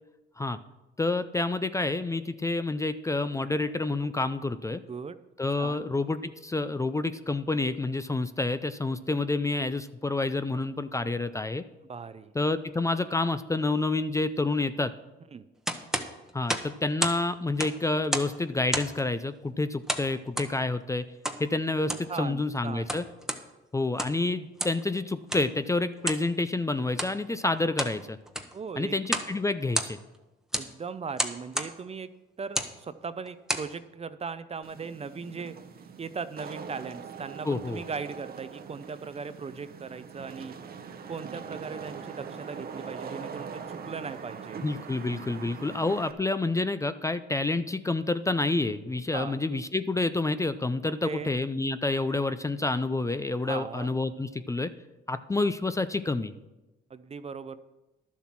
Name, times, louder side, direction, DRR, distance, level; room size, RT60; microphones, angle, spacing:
voice 1, 1.0-4.8 5.4-11.6 12.3-14.9 16.3-21.1 21.4-23.1 23.7-28.2 28.8-30.0 37.4-37.8 44.6-54.7 55.1-56.3, left 2 dB, 15° left, 12 dB, 0.5 m, -28 dB
voice 2, 4.7-5.2 5.6-5.9 11.9-12.3 15.3-15.4 22.1-22.9 28.5-29.0 30.5-32.1 32.4-35.6 36.0-40.5 41.1-44.6 49.1-49.4 50.8-51.3 52.1-52.3 53.4-53.9 56.9-57.6, right 5 dB, 30° right, 13 dB, 0.6 m, -38 dB
sound 1, 15.7-17.2 17.5-18.4 18.7-19.1 19.9-20.5 21.2-21.4 21.8-22.1 22.7-23.4 23.9-24.2 24.6-24.8 25.3-25.5 26.0-26.3 26.9-27.2 27.6-28.0 28.3-28.6 29.1-29.3 29.6-30.2 30.5-30.7 31.2-31.7 32.4-32.8 33.3-33.7, right 1 dB, 5° right, 1.0 m, -31 dB
Wind / Rain, 34.6-46.1, right 6 dB, 50° right, 0.9 m, -42 dB
11.5 x 7.2 x 6.0 m, 1.0 s
cardioid pair, 90°, 20 cm